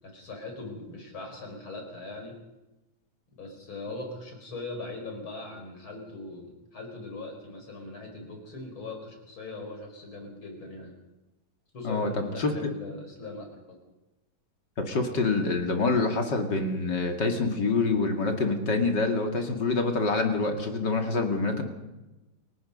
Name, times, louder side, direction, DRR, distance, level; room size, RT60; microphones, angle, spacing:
voice 1, 0.0-2.3 3.4-10.9 11.7-13.8, left 2 dB, 85° left, 3 dB, 5.7 m, -40 dB
voice 2, 11.8-12.5 14.8-21.6, left 3 dB, 60° left, 4 dB, 2.9 m, -26 dB
29.0 x 17.0 x 5.5 m, 1.0 s
omnidirectional pair, 2.2 m